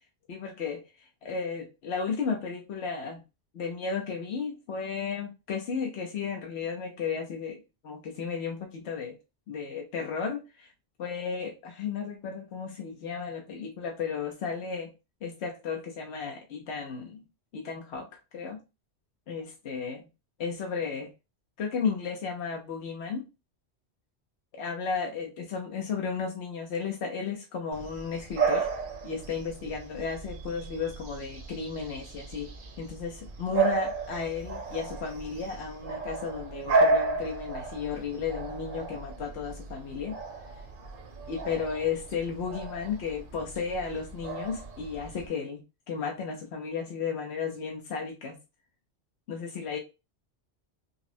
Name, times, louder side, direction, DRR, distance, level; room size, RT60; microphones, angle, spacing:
voice 1, 0.3-0.8 1.2-3.2 3.5-9.2 9.5-10.7 11.0-14.9 15.2-17.2 17.5-18.1 18.3-18.6 19.3-20.1 20.4-21.1 21.6-23.2 24.6-28.7 29.0-32.5 32.8-40.1 41.3-45.6 45.9-48.4 49.3-49.8, left 6 dB, 75° left, 1.0 m, -34 dB
Bark / Bird vocalization bird call bird song, 27.7-45.3, right 4 dB, 55° right, 0.9 m, -33 dB
5.2 x 2.1 x 2.6 m
omnidirectional pair, 1.1 m